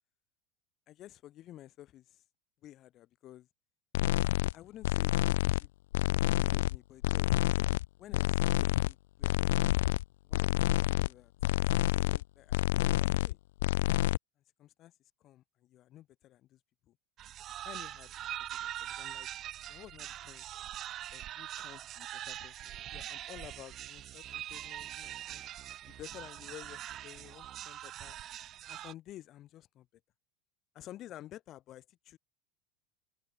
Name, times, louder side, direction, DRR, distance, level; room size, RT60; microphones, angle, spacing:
voice 1, 0.9-2.2 2.6-3.5 4.5-5.7 6.3-7.3 8.0-9.9 10.3-13.4 14.6-14.9 15.2-16.6 17.6-18.1 18.5-19.3 19.7-20.4 21.1-25.4 25.9-28.2 28.7-29.9 30.7-32.2, left 13 dB, 35° left, 2.6 m, -52 dB
sound 1, 3.9-4.5 4.8-5.7 5.9-6.8 7.0-7.9 8.1-8.9 9.2-10.0 10.3-11.1 11.4-12.2 12.5-13.3 13.6-14.2, left 16 dB, 85° left, 0.7 m, -28 dB
sound 2, 17.2-28.9, right 12 dB, 30° right, 7.6 m, -43 dB
open air
supercardioid pair, 160°, 0 cm